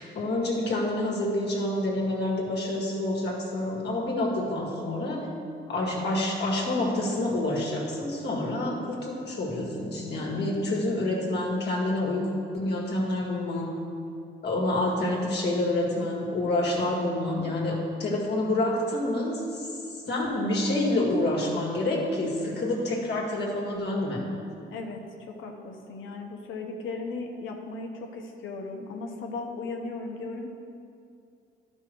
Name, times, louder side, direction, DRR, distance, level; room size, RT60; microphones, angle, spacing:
voice 1, 0.0-5.3 5.7-13.7 14.4-19.7 20.1-24.3, left 1 dB, 60° left, -2 dB, 1.9 m, -28 dB
voice 2, 24.7-25.0 25.3-30.5, left 3 dB, 80° left, 2 dB, 1.0 m, -36 dB
11.5 x 5.6 x 4.6 m, 2.5 s
cardioid pair, 90°, 20 cm